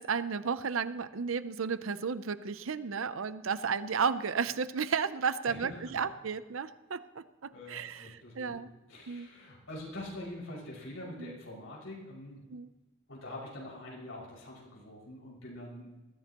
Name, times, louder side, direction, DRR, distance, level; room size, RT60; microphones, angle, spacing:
voice 1, 0.0-8.7 9.1-9.3 11.2-11.3 12.5-12.7, right 6 dB, 85° right, 14 dB, 0.6 m, -33 dB
voice 2, 5.4-6.1 7.5-12.4 13.1-15.9, left 1 dB, 90° left, -3 dB, 6.0 m, -45 dB
20.5 x 15.5 x 3.0 m, 1.1 s
head